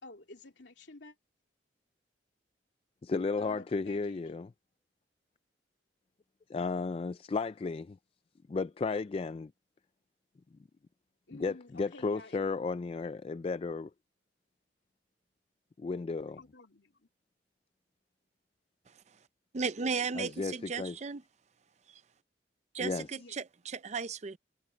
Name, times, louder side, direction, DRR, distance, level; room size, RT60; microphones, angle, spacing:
voice 1, 0.0-1.2 3.4-4.4 11.3-12.4 16.4-17.1 23.1-23.4, left 2 dB, 75° left, 2.8 m, -51 dB
voice 2, 3.0-4.5 6.5-8.0 8.5-9.5 11.3-13.9 15.8-16.4 20.2-21.0 22.8-23.1, left 4 dB, 30° left, 0.3 m, -34 dB
voice 3, 19.5-21.2 22.7-24.4, right 5 dB, 40° right, 0.5 m, -35 dB
head